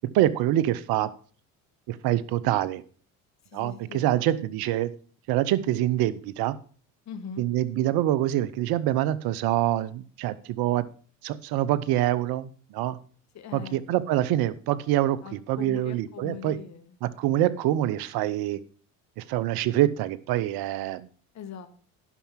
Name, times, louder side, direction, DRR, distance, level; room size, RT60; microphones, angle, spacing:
voice 1, 0.1-1.1 1.9-2.8 3.5-4.9 5.3-6.6 7.4-10.8 11.2-13.0 13.5-16.6 17.0-18.6 19.2-21.1, right 13 dB, 65° right, 18 dB, 0.9 m, -25 dB
voice 2, 3.5-4.3 7.0-7.5 13.3-13.8 15.2-17.0 21.3-21.7, left 7 dB, 45° left, 9 dB, 1.5 m, -41 dB
11.0 x 5.7 x 5.8 m, 0.42 s
supercardioid pair, 75°, 39 cm